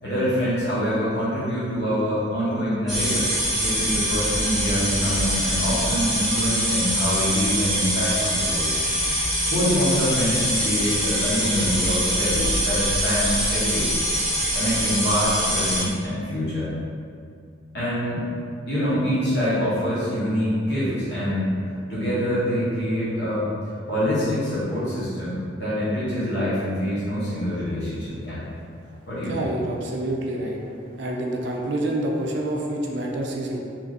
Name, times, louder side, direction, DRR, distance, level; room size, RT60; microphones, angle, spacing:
voice 1, 0.0-3.3 3.5-8.7 9.5-14.0 14.5-16.7 17.7-18.3 18.7-21.5 21.9-23.5 23.9-28.4 29.1-29.5, equal, 60° left, -11 dB, 0.9 m, -25 dB
sound 1, 2.9-15.8, equal, ahead, 0.9 m, -24 dB
voice 2, 29.3-30.6 31.0-33.6, right 1 dB, 60° right, 0 dB, 0.4 m, -27 dB
3.0 x 2.4 x 2.5 m, 2.3 s
head